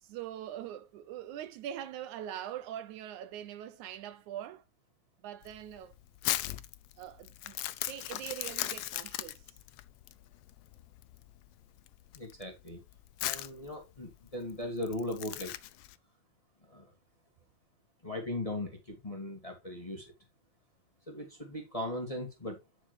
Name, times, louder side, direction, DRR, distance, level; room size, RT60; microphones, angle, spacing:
voice 1, 0.0-4.6 5.2-5.9 7.0-7.6 7.9-9.6, right 11 dB, 75° right, 2.1 m, -42 dB
Crumpling crinkling, 5.4-15.9, left 15 dB, 90° left, 1.4 m, -38 dB
voice 2, 12.1-12.8 13.2-15.5 16.7-16.9 18.0-20.1 21.1-22.6, left 1 dB, 15° left, 1.9 m, -38 dB
10.0 x 6.4 x 3.3 m
omnidirectional pair, 3.5 m